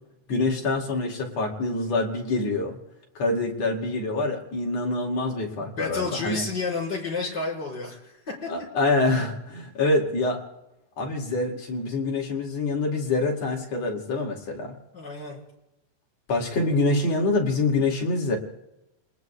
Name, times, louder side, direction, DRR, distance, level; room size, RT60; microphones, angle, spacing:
voice 1, 0.3-2.8 3.1-6.4 8.5-10.4 11.0-14.8 16.3-18.4, left 2 dB, 60° left, 0 dB, 3.4 m, -25 dB
voice 2, 5.6-8.5 14.9-15.4, left 4 dB, 35° left, -3 dB, 5.9 m, -31 dB
29.5 x 20.0 x 2.3 m, 0.92 s
omnidirectional pair, 3.4 m